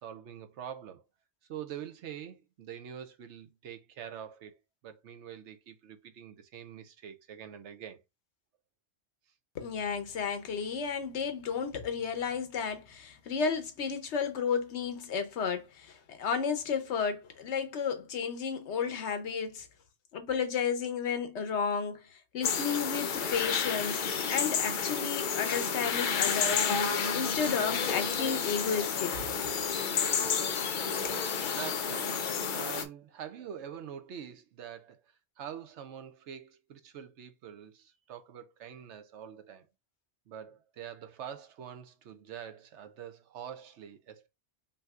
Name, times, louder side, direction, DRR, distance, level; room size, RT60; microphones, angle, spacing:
voice 1, 0.0-1.0 1.5-4.5 4.8-8.0 29.1-29.3 31.5-35.0 35.4-39.6 40.3-44.3, right 9 dB, 85° right, 1.0 m, -45 dB
voice 2, 9.5-19.7 20.1-29.1 31.0-31.2, left 6 dB, 80° left, 1.1 m, -33 dB
sound 1, 22.4-32.8, left 6 dB, 55° left, 0.6 m, -30 dB
5.5 x 2.8 x 2.4 m
omnidirectional pair, 1.2 m